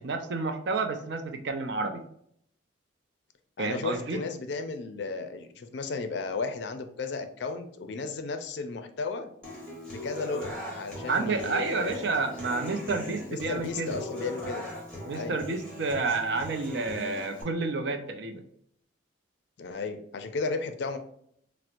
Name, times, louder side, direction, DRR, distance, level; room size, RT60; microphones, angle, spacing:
voice 1, 0.0-2.0 3.6-4.2 11.1-14.0 15.1-18.4, right 3 dB, 60° right, 6 dB, 0.4 m, -30 dB
voice 2, 3.6-9.3 9.9-12.0 13.3-14.7 15.1-15.4 19.6-21.0, left 4 dB, 60° left, 7 dB, 0.4 m, -34 dB
Human voice / Acoustic guitar, 9.4-17.4, left 1 dB, 5° left, 0.8 m, -40 dB
4.3 x 2.0 x 2.5 m, 0.68 s
head